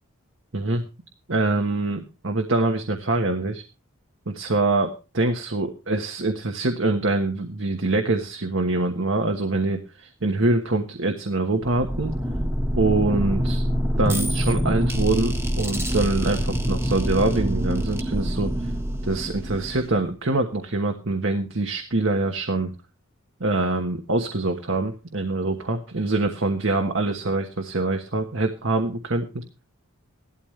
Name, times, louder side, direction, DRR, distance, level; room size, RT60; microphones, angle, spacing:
voice 1, 0.5-0.8 1.3-3.6 4.3-12.1 12.7-13.6 14.0-18.7 19.0-22.7 23.4-29.4, right 2 dB, 60° right, 4 dB, 1.3 m, -24 dB
sound 1, 11.6-20.1, equal, 10° right, 1.5 m, -25 dB
16.0 x 12.5 x 3.3 m, 0.32 s
head